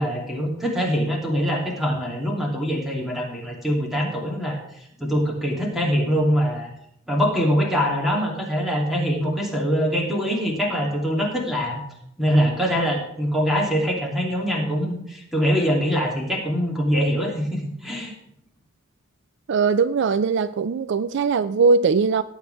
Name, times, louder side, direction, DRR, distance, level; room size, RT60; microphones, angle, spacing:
voice 1, 0.0-6.7 7.1-11.8 12.2-18.1, equal, ahead, -2 dB, 2.9 m, -23 dB
voice 2, 19.5-22.2, right 5 dB, 60° right, 14 dB, 0.4 m, -20 dB
18.5 x 8.3 x 3.5 m, 0.72 s
head